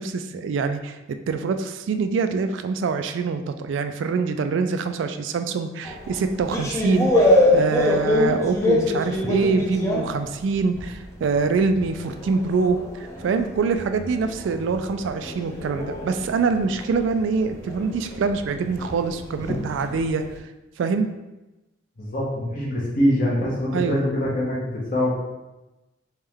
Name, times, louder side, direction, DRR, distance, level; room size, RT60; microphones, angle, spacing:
voice 1, 0.0-20.2 20.8-21.1 23.7-24.0, right 4 dB, 75° right, 8 dB, 0.3 m, -25 dB
sound 1, 5.8-11.0 11.4-20.3, left 1 dB, 15° left, 0.5 m, -25 dB
voice 2, 22.0-25.1, equal, 45° left, -5 dB, 1.1 m, -24 dB
3.5 x 3.1 x 3.4 m, 1.0 s
head